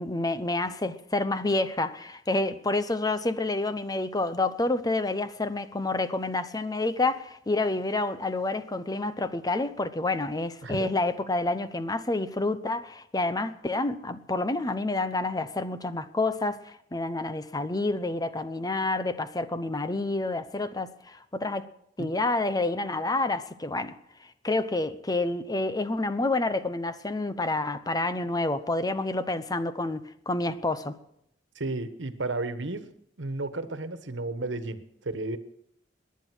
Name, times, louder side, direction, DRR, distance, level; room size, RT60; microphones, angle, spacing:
voice 1, 0.0-21.7 22.0-23.9 24.4-31.0, left 2 dB, 20° left, 0.8 m, -28 dB
voice 2, 31.5-32.9 33.2-35.4, right 2 dB, 90° right, 1.4 m, -33 dB
19.0 x 10.5 x 6.2 m
head